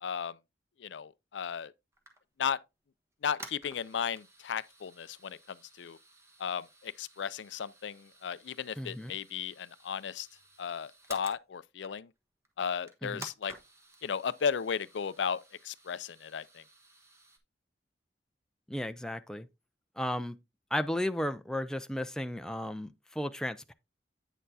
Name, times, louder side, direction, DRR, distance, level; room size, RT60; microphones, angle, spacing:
voice 1, 0.0-0.4 0.8-1.7 2.4-2.6 3.2-6.0 6.4-10.3 10.6-12.1 12.6-13.5 14.0-16.6, left 7 dB, 85° left, 0.4 m, -35 dB
sound 1, 1.9-2.6 3.1-11.4 11.8-12.2 12.4-12.5 12.8-17.4, right 2 dB, 15° right, 1.2 m, -53 dB
voice 2, 8.8-9.1 13.0-13.3 18.7-19.5 20.0-20.4 20.7-23.7, left 1 dB, 5° left, 0.4 m, -34 dB
9.0 x 6.5 x 2.7 m
head